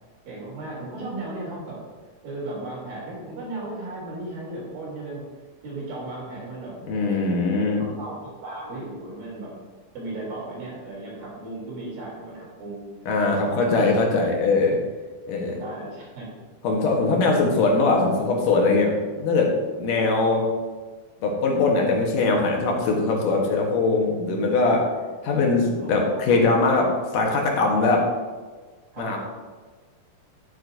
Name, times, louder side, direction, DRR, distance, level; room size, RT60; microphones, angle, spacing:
voice 1, 0.2-1.9 2.2-5.3 5.6-7.2 7.8-9.5 9.9-12.8 13.4-13.9 15.6-16.3 19.9-20.4 25.8-26.4 28.9-29.2, right 2 dB, 90° right, -5 dB, 5.0 m, -36 dB
voice 2, 6.9-7.9 13.1-14.8 15.3-15.6 16.6-19.5 19.8-20.4 21.2-24.9 25.2-28.1 29.0-29.2, left 3 dB, 70° left, 0 dB, 2.7 m, -21 dB
10.5 x 9.3 x 2.6 m, 1.4 s
omnidirectional pair, 4.0 m